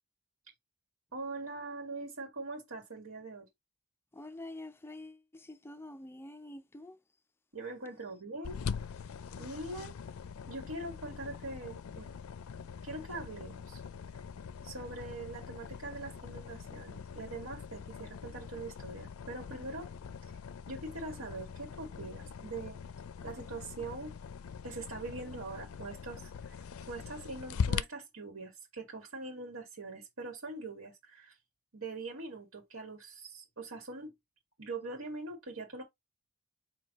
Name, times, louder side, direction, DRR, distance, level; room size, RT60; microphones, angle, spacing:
voice 1, 1.1-3.5 7.5-8.6 9.4-9.9 10.5-12.2 12.8-13.8 14.6-19.9 20.7-22.8 23.2-24.2 24.6-26.6 26.9-31.4 31.7-34.1 34.6-35.8, right 2 dB, 75° right, 1.8 m, -43 dB
voice 2, 4.2-7.0, left 1 dB, 10° left, 0.4 m, -47 dB
sound 1, 8.4-27.8, left 6 dB, 70° left, 0.4 m, -42 dB
4.6 x 2.8 x 4.0 m
head